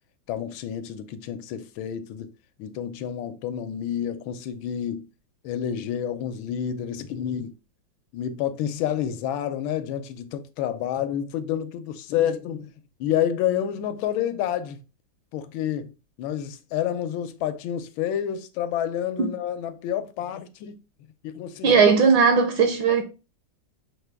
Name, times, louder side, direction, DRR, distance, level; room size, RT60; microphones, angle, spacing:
voice 1, 0.3-2.3 2.6-5.1 5.4-7.5 8.1-12.7 13.0-14.8 15.3-15.9 16.2-20.8 21.2-21.8, left 10 dB, 80° left, 1.3 m, -29 dB
voice 2, 21.6-23.0, right 5 dB, 75° right, 1.4 m, -18 dB
6.2 x 2.2 x 3.4 m
omnidirectional pair, 2.2 m